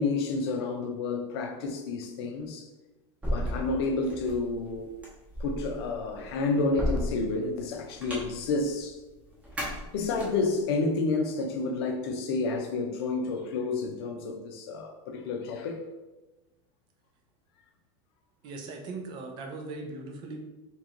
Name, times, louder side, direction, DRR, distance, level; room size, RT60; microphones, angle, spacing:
voice 1, 0.0-2.7 3.3-4.9 5.4-9.0 9.9-15.8, left 3 dB, 60° left, 3 dB, 0.6 m, -30 dB
sound 1, 3.2-10.6, equal, 10° right, 0.9 m, -35 dB
voice 2, 18.4-20.4, right 3 dB, 30° right, 3 dB, 0.5 m, -39 dB
3.0 x 3.0 x 3.7 m, 1.1 s
supercardioid pair, 170°, 15 cm